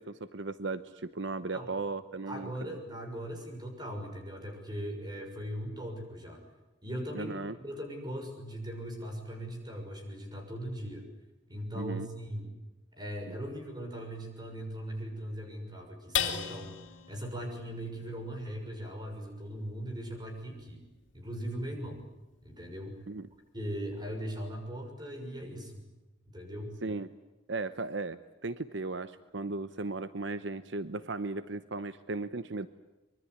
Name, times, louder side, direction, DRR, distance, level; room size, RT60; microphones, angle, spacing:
voice 1, 0.0-2.8 7.1-7.6 11.7-12.1 13.3-13.4 23.1-23.3 26.8-27.1 27.5-32.7, right 3 dB, 70° right, 13 dB, 0.9 m, -36 dB
voice 2, 2.3-6.4 6.8-7.3 7.6-11.0 11.5-12.5 12.9-16.8 17.1-20.8 21.1-22.0 22.4-23.0 23.5-25.8 26.3-26.7, equal, 20° right, 4 dB, 6.5 m, -39 dB
sound 1, 16.1-22.8 23.3-23.4 23.8-24.3, left 8 dB, 80° left, 2.8 m, -40 dB
24.5 x 23.0 x 9.6 m, 1.1 s
head